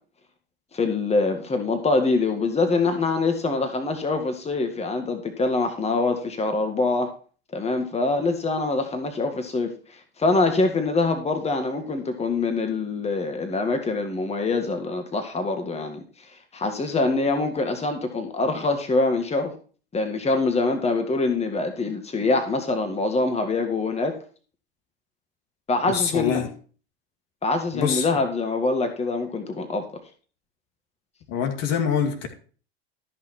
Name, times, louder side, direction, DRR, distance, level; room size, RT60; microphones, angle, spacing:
voice 1, 0.7-7.1 7.5-19.5 19.9-24.2 25.7-26.4 27.4-29.9, left 3 dB, 20° left, 5 dB, 1.8 m, -24 dB
voice 2, 25.9-26.5 27.7-28.1 31.3-32.3, left 7 dB, 60° left, 4 dB, 2.4 m, -24 dB
13.0 x 6.0 x 4.4 m, 0.40 s
hypercardioid pair, 85°, 30 cm